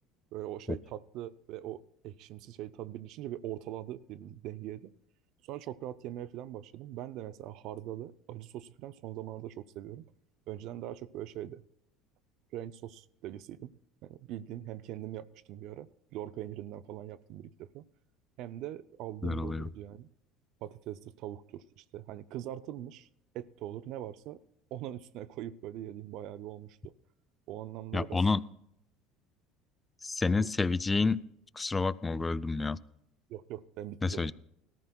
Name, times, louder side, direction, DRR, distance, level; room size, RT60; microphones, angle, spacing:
voice 1, 0.3-4.9 5.5-10.1 10.5-11.6 12.5-13.7 14.0-17.9 18.4-20.1 20.6-23.1 23.3-24.4 24.7-26.9 27.5-28.3 30.3-30.5 33.3-34.3, right 12 dB, 65° right, 16 dB, 0.5 m, -42 dB
voice 2, 19.2-19.7 27.9-28.4 30.0-31.2 31.6-32.8 34.0-34.3, left 3 dB, 15° left, 17 dB, 0.4 m, -29 dB
18.5 x 14.0 x 2.3 m, 0.79 s
supercardioid pair, 105°, 0 cm